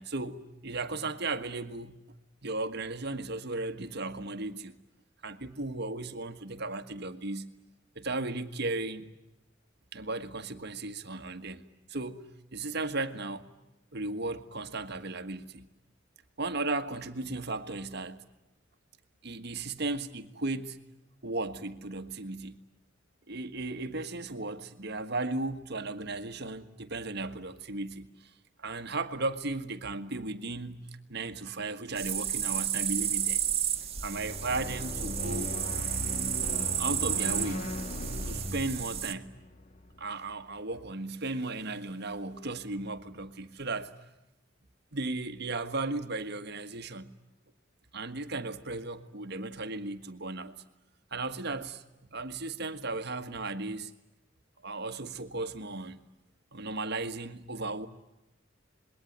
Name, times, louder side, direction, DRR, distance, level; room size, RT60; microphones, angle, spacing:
voice 1, 0.0-2.0 2.4-4.7 5.2-7.5 7.9-9.0 9.9-11.6 11.9-12.2 12.5-13.4 13.9-15.7 16.4-18.2 19.2-20.8 21.2-22.6 23.3-28.1 28.6-33.4 34.0-35.5 36.8-37.7 38.2-39.3 40.0-43.9 44.9-47.1 47.9-50.5 51.1-51.8 52.1-53.9 54.6-56.0 56.5-57.9, right 2 dB, 55° right, 9 dB, 1.6 m, -35 dB
sound 1, 32.0-39.1, right 9 dB, 30° right, 1.8 m, -32 dB
sound 2, 34.0-40.4, left 1 dB, 35° left, 1.8 m, -38 dB
27.0 x 21.5 x 9.4 m, 0.92 s
head